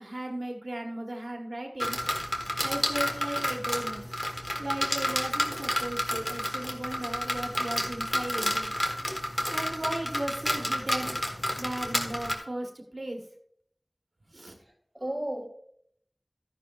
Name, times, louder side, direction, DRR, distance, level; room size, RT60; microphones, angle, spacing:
voice 1, 0.0-2.0 2.6-4.1 4.6-8.7 9.5-11.2 11.6-13.2 14.3-14.5, right 1 dB, 75° right, 1.2 m, -36 dB
sound 1, 1.8-12.3, left 1 dB, 35° left, 1.4 m, -30 dB
voice 2, 14.6-15.5, right 1 dB, 15° right, 1.5 m, -35 dB
13.0 x 10.0 x 2.4 m
wide cardioid pair, 45°, 0 cm